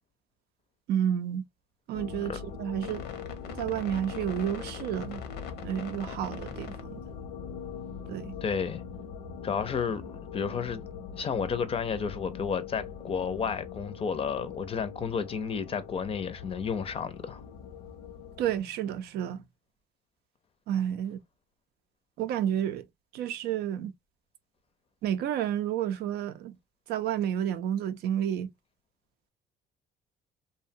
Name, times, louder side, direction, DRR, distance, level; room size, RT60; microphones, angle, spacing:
voice 1, 0.9-1.4 1.9-3.0 3.6-5.2 5.6-7.0 8.1-8.3 18.4-19.4 20.7-21.2 22.2-22.9 23.1-23.9 25.0-26.6 26.9-28.5, right 10 dB, 70° right, 0.5 m, -30 dB
sound 1, 1.9-18.6, left 7 dB, 85° left, 0.7 m, -41 dB
voice 2, 8.4-8.8 9.4-10.8 11.1-17.4, left 6 dB, 35° left, 0.5 m, -32 dB
2.7 x 2.1 x 2.6 m
cardioid pair, 110°, 17 cm